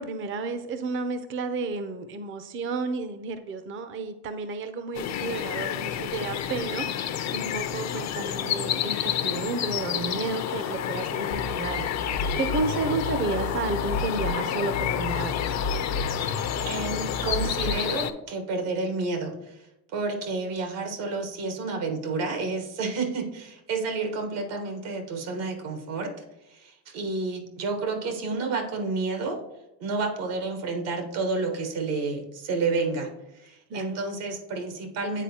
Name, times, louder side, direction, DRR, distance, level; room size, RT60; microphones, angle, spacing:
voice 1, 0.0-15.5 33.7-34.0, right 3 dB, 30° right, 10 dB, 0.5 m, -32 dB
sound 1, 4.9-18.1, left 9 dB, 40° left, 0.5 m, -29 dB
sound 2, 11.3-14.3 14.7-17.8, left 2 dB, 80° left, 0.8 m, -33 dB
voice 2, 16.7-26.1 26.4-29.4 29.8-35.2, right 3 dB, 80° right, 5 dB, 1.3 m, -30 dB
9.0 x 4.0 x 2.8 m, 0.89 s
supercardioid pair, 95°, 42 cm